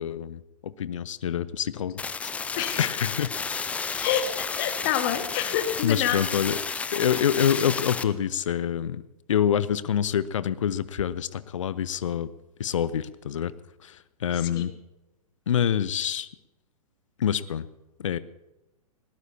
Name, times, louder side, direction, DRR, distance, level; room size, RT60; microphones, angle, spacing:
voice 1, 0.0-2.3 2.8-3.3 3.9-4.1 5.8-6.6 6.9-9.0 9.3-12.3 12.6-13.5 13.8-14.7 15.5-16.3 17.2-17.6 18.0-18.2, left 9 dB, 55° left, 17 dB, 0.6 m, -26 dB
sound 1, 2.0-8.0, left 5 dB, 5° left, 0.5 m, -32 dB
voice 2, 2.6-2.9 3.4-3.5 4.0-6.2 14.3-14.6, left 10 dB, 35° left, 8 dB, 1.6 m, -28 dB
20.5 x 19.0 x 2.8 m, 0.97 s
figure-of-eight pair, 110°, 19 cm